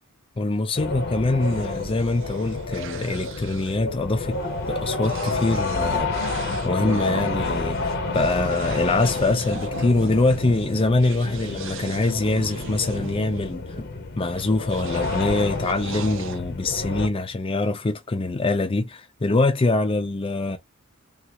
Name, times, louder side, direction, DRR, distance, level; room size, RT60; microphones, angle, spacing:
voice 1, 0.4-4.4 4.7-6.1 6.6-13.9 14.2-20.6, left 2 dB, 25° left, 0.4 m, -24 dB
sound 1, 0.7-17.1, left 3 dB, 50° left, 0.7 m, -29 dB
sound 2, 1.4-13.5 14.3-16.4, right 6 dB, 60° right, 0.5 m, -38 dB
3.5 x 2.4 x 2.9 m
head